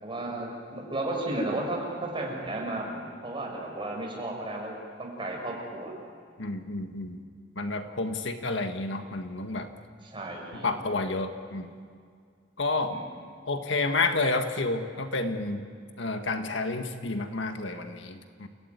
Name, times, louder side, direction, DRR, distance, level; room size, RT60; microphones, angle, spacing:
voice 1, 0.0-4.7 5.0-5.9 10.0-10.7 12.9-13.0, right 1 dB, 25° right, -1 dB, 6.3 m, -33 dB
voice 2, 6.4-7.2 7.6-9.7 10.5-11.7 12.6-13.0 13.5-15.7 16.0-18.5, left 3 dB, 70° left, 6 dB, 1.7 m, -30 dB
29.5 x 17.0 x 9.6 m, 2.1 s
head